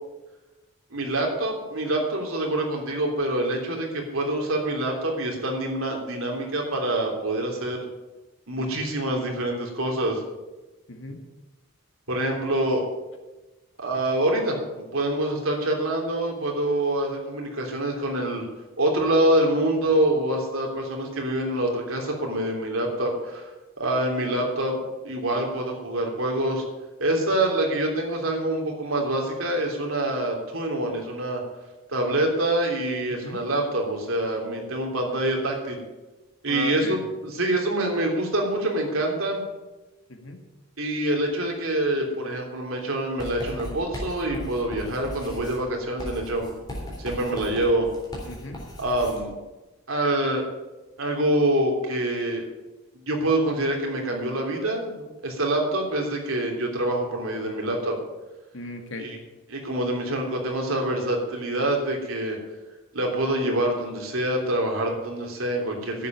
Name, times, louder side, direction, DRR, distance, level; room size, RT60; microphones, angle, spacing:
voice 1, 0.9-7.8 8.5-10.2 12.1-12.8 13.8-18.4 18.8-23.5 23.8-24.8 25.0-26.6 27.0-31.4 31.9-35.8 36.4-37.0 37.2-39.4 40.8-46.5 47.0-47.9 48.8-49.4 49.9-50.5 51.0-52.4 53.1-58.0 59.0-59.2 59.5-62.4 62.9-66.1, right 1 dB, 75° right, 1 dB, 3.2 m, -26 dB
voice 2, 10.9-11.2 33.1-33.4 36.5-37.0 40.1-40.4 48.3-48.6 58.5-59.1, left 3 dB, 65° left, 4 dB, 1.9 m, -37 dB
Writing, 43.2-49.2, equal, 20° left, 3.6 m, -37 dB
11.0 x 7.6 x 9.5 m, 1.1 s
head